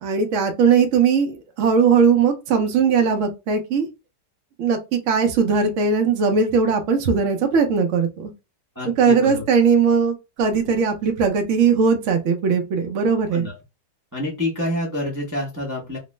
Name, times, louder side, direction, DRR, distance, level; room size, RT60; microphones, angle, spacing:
voice 1, 0.0-3.9 4.6-8.3 9.0-13.4, right 5 dB, 65° right, 0.8 m, -19 dB
voice 2, 8.8-9.4 13.3-13.6 14.1-16.0, left 1 dB, 20° right, 0.4 m, -27 dB
3.0 x 2.0 x 3.1 m
omnidirectional pair, 1.8 m